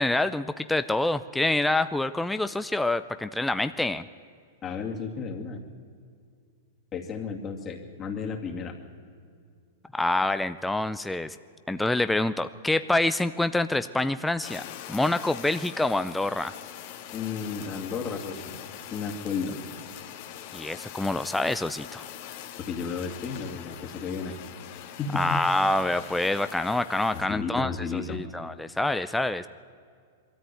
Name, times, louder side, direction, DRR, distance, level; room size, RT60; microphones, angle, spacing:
voice 1, 0.0-4.0 9.9-11.4 11.7-16.5 20.5-22.1 25.1-29.5, left 2 dB, 5° left, 11 dB, 0.5 m, -26 dB
voice 2, 4.6-5.6 6.9-8.7 17.1-18.6 18.9-19.6 22.7-24.3 25.0-25.4 27.1-28.2, left 5 dB, 25° left, 2 dB, 2.5 m, -33 dB
Fire, 14.4-27.2, left 10 dB, 55° left, 1.8 m, -42 dB
21.5 x 13.5 x 9.4 m, 2.2 s
hypercardioid pair, 130°, 0 cm